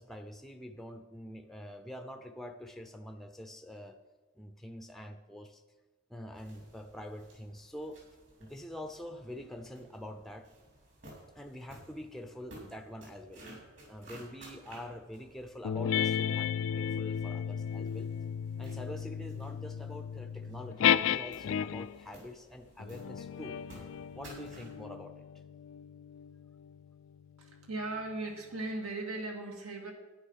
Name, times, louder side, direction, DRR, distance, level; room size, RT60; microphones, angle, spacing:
voice 1, 0.0-4.0 4.4-5.6 6.1-8.0 8.4-10.5 11.3-13.4 13.9-18.1 18.6-23.6 24.1-25.2, left 1 dB, ahead, 6 dB, 0.5 m, -45 dB
sound 1, 6.3-24.8, right 1 dB, 55° right, 4.0 m, -56 dB
sound 2, 15.6-22.0 22.8-27.7, left 9 dB, 70° left, 0.3 m, -34 dB
voice 2, 27.4-29.9, right 2 dB, 85° right, 2 dB, 2.3 m, -38 dB
10.0 x 9.4 x 5.6 m, 1.2 s
head